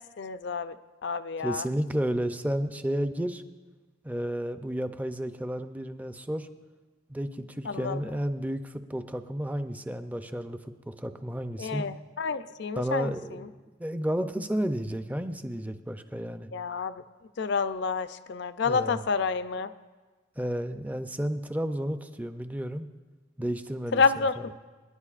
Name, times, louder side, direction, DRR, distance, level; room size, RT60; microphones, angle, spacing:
voice 1, 0.2-0.7 1.0-1.7 7.7-8.0 11.6-13.5 16.5-16.9 17.4-19.7 23.9-24.5, left 5 dB, 60° left, 12 dB, 0.4 m, -29 dB
voice 2, 1.4-3.4 4.0-6.5 7.1-11.9 12.8-16.5 18.7-19.0 20.4-22.9 23.4-24.4, equal, 10° right, 8 dB, 0.4 m, -32 dB
27.0 x 10.5 x 2.5 m, 1.3 s
head